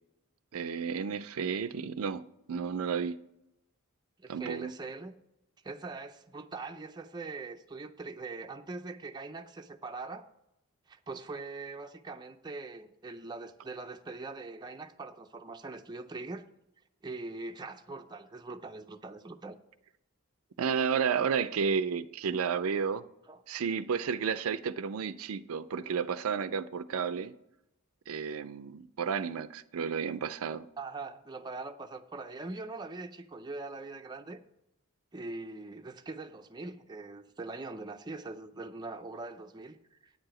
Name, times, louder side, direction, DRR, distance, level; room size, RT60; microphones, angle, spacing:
voice 1, 0.5-2.2 2.5-3.2 4.3-4.7 20.6-23.0 23.5-27.3 28.1-30.7, right 6 dB, 75° right, 0.4 m, -32 dB
voice 2, 4.2-5.1 5.6-10.3 10.9-16.5 17.0-19.6 23.3-23.4 30.8-34.4 35.1-40.1, right 3 dB, 20° right, 0.4 m, -42 dB
9.3 x 4.8 x 7.7 m
head